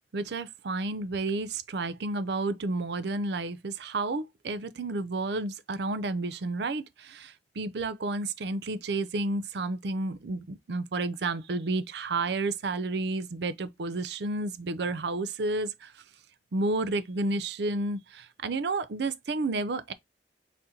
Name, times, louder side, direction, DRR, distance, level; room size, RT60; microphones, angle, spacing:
voice 1, 0.1-16.0 16.5-19.9, right 2 dB, 65° right, 0.5 m, -31 dB
4.1 x 3.7 x 2.8 m
head